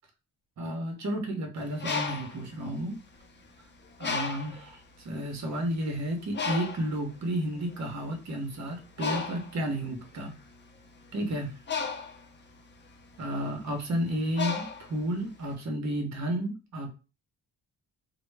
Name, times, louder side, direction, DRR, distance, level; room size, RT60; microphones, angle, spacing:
voice 1, 0.6-2.9 4.0-10.3 11.1-11.5 13.2-16.9, right 1 dB, 45° right, 3 dB, 0.8 m, -32 dB
Bird, 1.6-3.5 4.0-4.7 5.4-5.5 5.8-15.5, left 5 dB, 30° left, 0.5 m, -35 dB
2.1 x 2.0 x 3.2 m, 0.32 s
cardioid pair, 100°, 38 cm